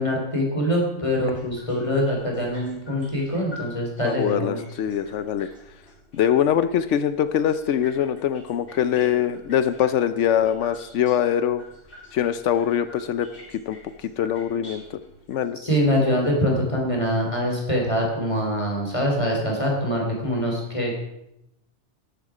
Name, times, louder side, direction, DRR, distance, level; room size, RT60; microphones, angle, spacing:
voice 1, 0.0-4.6 15.6-21.0, equal, 25° left, -1 dB, 3.4 m, -24 dB
sound 1, 1.1-15.5, left 2 dB, 50° left, 3.3 m, -48 dB
voice 2, 4.0-5.5 6.1-11.6 12.1-13.3 13.7-13.8 14.0-15.0 15.3-15.6, left 9 dB, 85° left, 12 dB, 1.0 m, -23 dB
13.5 x 10.5 x 4.9 m, 0.83 s
omnidirectional pair, 1.2 m